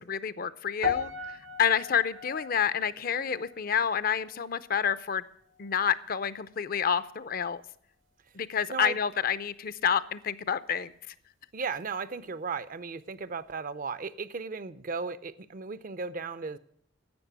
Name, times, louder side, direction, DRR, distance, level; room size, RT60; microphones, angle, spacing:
voice 1, 0.0-5.2 5.6-7.6 8.3-10.9, left 7 dB, 45° left, 16 dB, 0.5 m, -29 dB
sound 1, 0.8-5.2 5.5-5.9 6.5-6.6, left 5 dB, 80° right, 1.1 m, -37 dB
voice 2, 11.5-16.6, right 5 dB, 45° right, 16 dB, 0.5 m, -35 dB
11.5 x 8.0 x 8.1 m, 0.68 s
head